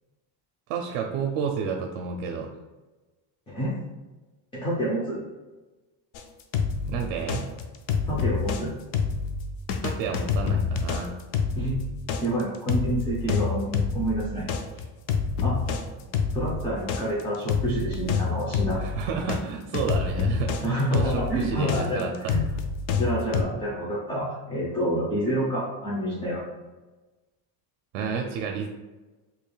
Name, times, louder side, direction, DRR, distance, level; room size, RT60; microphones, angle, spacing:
voice 1, 0.7-2.5 6.8-7.5 9.8-11.1 18.8-22.3 27.9-28.7, right 6 dB, 75° right, 3 dB, 0.6 m, -30 dB
voice 2, 3.5-3.8 4.5-5.2 8.1-8.7 11.5-11.8 12.2-14.5 15.4-15.6 16.3-18.8 20.6-22.4 23.0-26.4, right 1 dB, 10° left, -6 dB, 0.5 m, -28 dB
sound 1, 6.1-8.6 8.9-19.4 19.7-23.4, left 5 dB, 70° left, 0.6 m, -27 dB
4.6 x 3.0 x 2.2 m, 1.2 s
cardioid pair, 150°, 48 cm